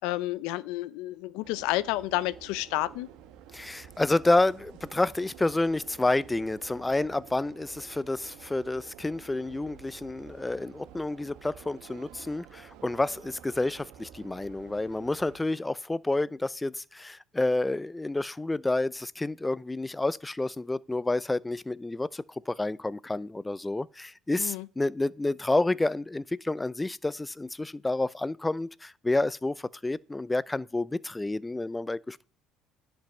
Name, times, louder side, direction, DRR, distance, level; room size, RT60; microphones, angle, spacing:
voice 1, 0.0-3.1 24.4-24.7, left 17 dB, 85° left, 0.5 m, -30 dB
sound 1, 1.4-15.4, right 9 dB, 80° right, 1.1 m, -50 dB
voice 2, 3.5-32.3, left 2 dB, 10° left, 0.4 m, -29 dB
10.5 x 5.3 x 7.1 m
cardioid pair, 100°, 0 cm